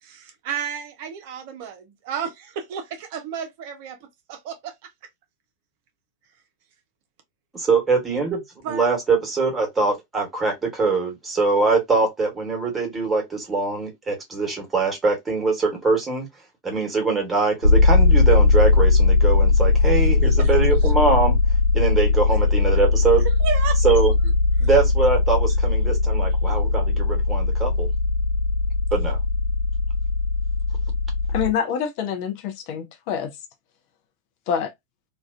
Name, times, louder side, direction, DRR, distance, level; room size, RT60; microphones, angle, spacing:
voice 1, 0.0-4.0 4.3-4.9 8.6-8.9 20.3-20.5 23.2-23.8 24.6-24.7, right 7 dB, 50° right, 0.5 m, -32 dB
voice 2, 7.5-16.3 16.6-21.4 21.7-23.3 23.8-24.1 24.6-27.9 28.9-29.2, right 4 dB, 15° right, 1.1 m, -23 dB
sound 1, 17.6-31.5, left 3 dB, 75° left, 0.7 m, -19 dB
voice 3, 31.3-33.3 34.5-34.7, left 8 dB, 45° left, 0.5 m, -26 dB
2.3 x 2.2 x 2.3 m
figure-of-eight pair, 90°, 0 cm